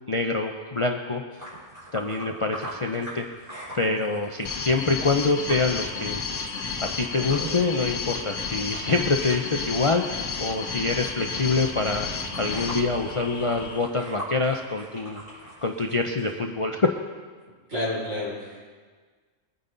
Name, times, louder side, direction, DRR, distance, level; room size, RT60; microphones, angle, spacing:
voice 1, 0.1-1.2 1.9-3.3 3.7-12.1 12.4-15.2 15.6-16.9, left 3 dB, 35° left, 3 dB, 0.6 m, -26 dB
sound 1, 1.3-16.3, right 1 dB, 30° right, 4.5 m, -43 dB
sound 2, 4.4-13.8, left 5 dB, 70° left, 1.4 m, -32 dB
voice 2, 17.7-18.7, left 1 dB, 80° right, -7 dB, 5.8 m, -30 dB
22.0 x 9.4 x 3.9 m, 1.5 s
omnidirectional pair, 1.3 m